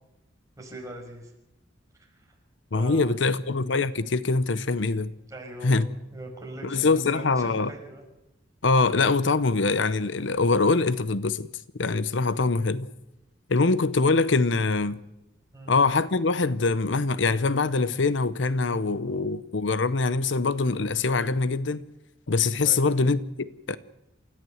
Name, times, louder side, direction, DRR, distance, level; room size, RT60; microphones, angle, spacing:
voice 1, 0.6-1.3 2.1-2.3 2.7-3.3 5.3-5.8 6.1-8.0 15.5-15.7 22.6-22.9, right 1 dB, 15° right, 5.9 m, -41 dB
voice 2, 2.7-5.1 5.6-5.9 6.6-7.7 8.6-11.5 11.8-12.9 13.5-15.0 15.7-21.8 22.3-23.8, left 3 dB, 70° left, 0.8 m, -23 dB
28.5 x 14.0 x 7.9 m
head